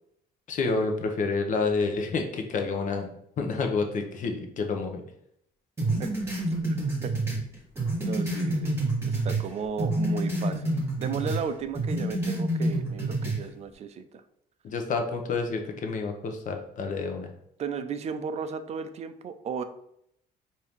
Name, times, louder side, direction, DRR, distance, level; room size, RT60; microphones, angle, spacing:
voice 1, 0.5-3.1 3.4-5.0 14.6-17.3, left 4 dB, 50° left, 4 dB, 0.8 m, -29 dB
sound 1, 5.8-9.5 9.8-11.4 11.7-13.4, right 1 dB, 15° right, 1.5 m, -28 dB
voice 2, 8.0-8.8 9.0-10.7 11.0-14.2 17.6-19.6, right 6 dB, 40° right, 10 dB, 0.4 m, -34 dB
4.5 x 2.7 x 3.5 m, 0.73 s
cardioid pair, 110°, 17 cm